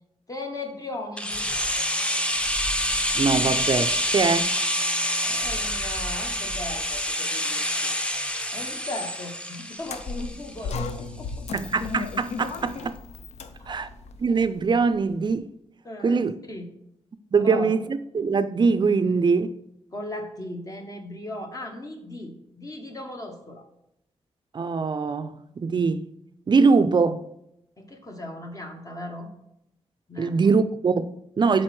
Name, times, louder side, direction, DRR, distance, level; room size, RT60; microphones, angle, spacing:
voice 1, 0.3-1.5 5.2-7.9 8.5-11.3 13.6-13.8 15.8-16.7 17.4-17.7 19.9-23.6 27.8-29.3 30.1-30.4, left 1 dB, 30° left, 0.9 m, -37 dB
sound 1, 1.2-11.0 11.3-11.4, equal, 10° left, 0.6 m, -27 dB
voice 2, 3.1-4.5 11.5-13.0 13.7-13.9 14.2-15.5 16.0-16.3 17.3-19.6 24.5-26.1 26.5-27.2 30.2-31.6, right 4 dB, 45° right, 0.4 m, -22 dB
sound 2, 9.8-15.1, left 4 dB, 90° left, 0.5 m, -35 dB
7.4 x 4.1 x 3.2 m
cardioid pair, 80°, 11 cm